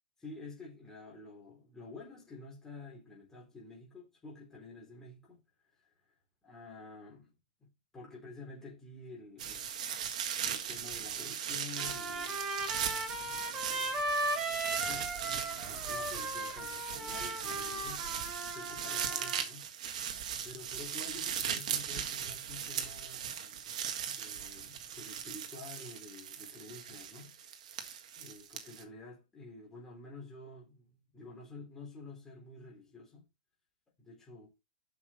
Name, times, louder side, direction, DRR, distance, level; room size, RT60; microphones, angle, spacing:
voice 1, 0.2-5.4 6.5-7.3 7.6-10.0 10.4-12.4 13.3-14.1 14.8-18.1 18.5-19.7 20.4-27.3 28.2-33.2 34.0-34.5, left 3 dB, 10° left, 3.8 m, -50 dB
sound 1, 9.4-28.8, right 8 dB, 55° right, 1.7 m, -38 dB
Trumpet, 11.8-19.4, right 1 dB, 15° right, 5.1 m, -37 dB
8.0 x 6.2 x 4.3 m
hypercardioid pair, 155°, 5 cm